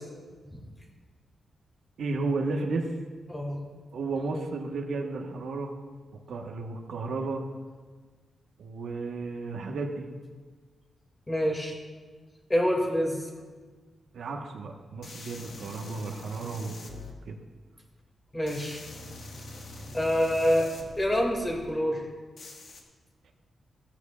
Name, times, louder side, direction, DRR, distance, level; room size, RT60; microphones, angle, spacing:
voice 1, 2.0-2.9 3.9-5.7 6.3-7.4 8.6-10.1 14.1-17.3, right 3 dB, 75° right, 2 dB, 1.2 m, -33 dB
voice 2, 3.3-3.6 11.3-11.7 12.5-13.3 18.3-18.8 19.9-20.7 21.0-22.0, equal, 15° left, 0 dB, 2.2 m, -26 dB
sound 1, 15.0-17.1 18.4-21.7 22.4-22.8, left 2 dB, 65° left, 1.6 m, -44 dB
16.0 x 13.5 x 2.4 m, 1.5 s
wide cardioid pair, 130°, 0 cm